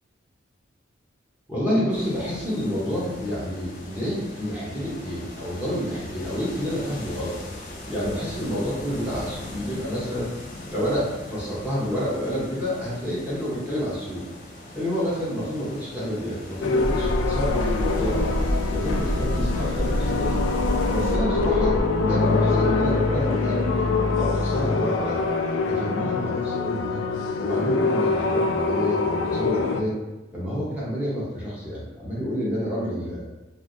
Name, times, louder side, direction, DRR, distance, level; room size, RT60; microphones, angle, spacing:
voice 1, 1.5-7.4 7.9-10.3 10.7-14.2 14.7-18.3 18.7-20.4 20.9-25.2 25.6-27.0 27.4-29.9 30.3-33.2, equal, 10° right, -8 dB, 0.8 m, -29 dB
sound 1, 1.9-21.1, left 1 dB, 40° left, 0.6 m, -40 dB
sound 2, 16.6-29.8, left 4 dB, 85° left, 0.3 m, -24 dB
sound 3, 16.8-21.8, equal, 40° right, 0.5 m, -27 dB
3.2 x 2.6 x 2.5 m, 1.0 s
head